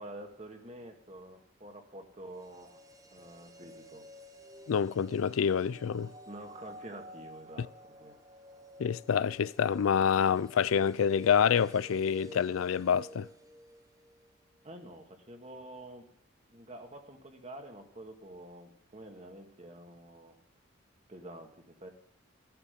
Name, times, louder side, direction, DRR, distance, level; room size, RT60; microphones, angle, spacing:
voice 1, 0.0-2.8 3.1-4.1 6.3-8.2 14.6-16.1 16.5-20.4 21.1-21.9, right 1 dB, 35° right, 1.8 m, -48 dB
sound 1, 2.2-14.3 14.6-14.7, equal, 15° right, 0.8 m, -52 dB
voice 2, 4.7-6.1 8.8-13.3, left 7 dB, 85° left, 0.4 m, -27 dB
14.0 x 11.0 x 5.2 m
head